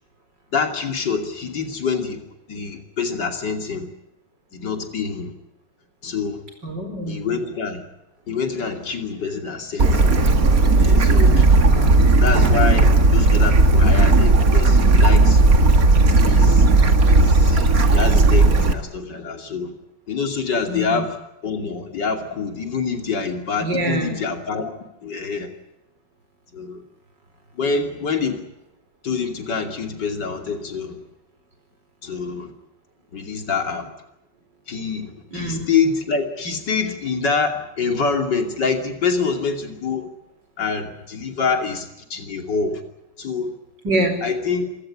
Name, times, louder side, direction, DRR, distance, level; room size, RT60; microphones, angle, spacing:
voice 1, 0.5-2.2 2.5-3.9 4.5-5.3 6.0-6.4 7.1-7.8 8.3-10.2 10.8-11.5 12.2-15.4 16.3-16.7 17.1-19.7 20.1-21.2 21.4-24.8 25.0-25.5 26.5-26.8 27.6-28.4 29.0-31.0 32.0-32.5 33.1-33.9 34.7-40.1 40.6-42.8 43.2-43.5 44.2-44.7, left 5 dB, 75° left, 5 dB, 3.4 m, -26 dB
voice 2, 6.6-7.4 11.7-12.1 20.7-21.1 23.6-24.2 35.3-35.6 43.8-44.2, right 1 dB, 80° right, 6 dB, 5.3 m, -25 dB
Bird / Stream, 9.8-18.7, right 2 dB, 55° right, 2.3 m, -14 dB
26.0 x 16.5 x 9.8 m, 0.86 s
omnidirectional pair, 1.9 m